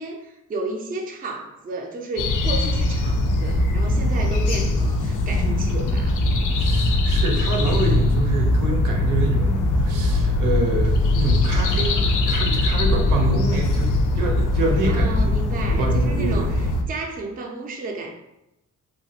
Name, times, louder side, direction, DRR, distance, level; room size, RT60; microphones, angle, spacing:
voice 1, 0.0-6.2 14.9-18.1, right 3 dB, 30° right, 2 dB, 0.4 m, -32 dB
sound 1, 2.2-16.8, left 2 dB, 75° left, 0.5 m, -21 dB
voice 2, 6.5-15.3 15.7-16.5, right 2 dB, 90° right, 1 dB, 0.7 m, -26 dB
3.1 x 2.2 x 2.7 m, 0.90 s
cardioid pair, 110°, 31 cm